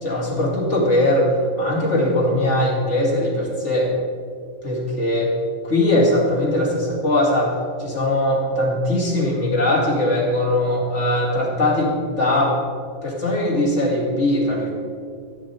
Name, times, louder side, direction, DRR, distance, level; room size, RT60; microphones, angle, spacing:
voice 1, 0.0-3.9 4.6-5.3 5.6-7.5 7.8-12.6 13.0-14.7, left 1 dB, 50° left, -3 dB, 2.6 m, -20 dB
14.5 x 8.6 x 4.4 m, 2.1 s
omnidirectional pair, 1.6 m